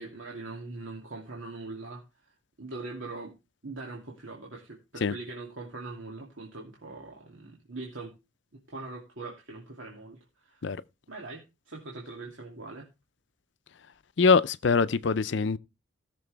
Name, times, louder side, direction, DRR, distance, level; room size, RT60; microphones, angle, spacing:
voice 1, 0.0-2.1 2.6-3.3 3.6-8.1 8.7-10.6 11.1-12.9, right 3 dB, 85° right, 2.6 m, -41 dB
voice 2, 14.2-15.6, left 4 dB, 65° left, 0.5 m, -23 dB
18.0 x 6.8 x 3.3 m
head